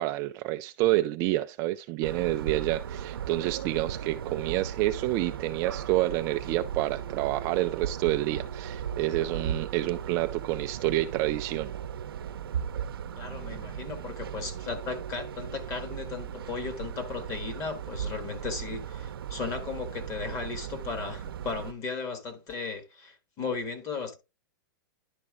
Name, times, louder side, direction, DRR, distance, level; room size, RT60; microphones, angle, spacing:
voice 1, 0.0-11.8, right 16 dB, 25° right, 0.3 m, -28 dB
sound 1, 2.0-21.7, right 9 dB, 85° right, 0.7 m, -37 dB
voice 2, 13.2-24.2, left 5 dB, 25° left, 1.6 m, -36 dB
11.0 x 4.2 x 3.7 m
supercardioid pair, 160°, 12 cm